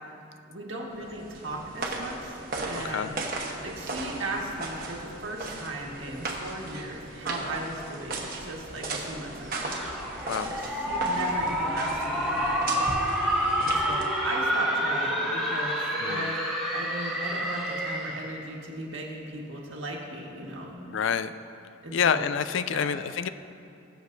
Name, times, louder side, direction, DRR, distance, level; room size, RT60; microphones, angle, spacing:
voice 1, 0.5-2.4 2.6-3.2 3.6-9.7 10.5-12.9 13.6-16.4 16.7-20.8 21.8-22.2 22.7-23.0, right 1 dB, 70° right, -2 dB, 1.6 m, -37 dB
sound 1, 1.0-14.3, right 2 dB, 45° right, 1.1 m, -37 dB
voice 2, 2.8-3.1 10.3-10.5 16.0-16.3 20.9-21.3 21.9-23.3, left 7 dB, 65° left, 12 dB, 0.3 m, -27 dB
sound 2, 9.4-18.3, equal, ahead, 1.6 m, -28 dB
21.0 x 7.2 x 2.7 m, 2.6 s
head